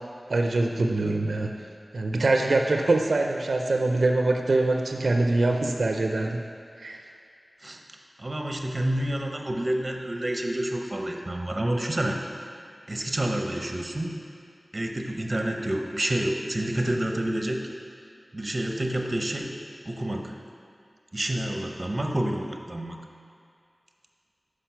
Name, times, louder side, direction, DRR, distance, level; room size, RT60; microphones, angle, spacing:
voice 1, 0.3-1.5 1.9-6.4 6.8-7.0, right 2 dB, 85° right, 2 dB, 0.4 m, -24 dB
voice 2, 8.2-12.2 12.9-14.2 14.7-17.6 18.3-19.5 19.8-20.4 21.1-23.0, right 1 dB, 40° right, 2 dB, 0.6 m, -28 dB
5.8 x 4.9 x 5.7 m, 2.3 s
wide cardioid pair, 60°, 0 cm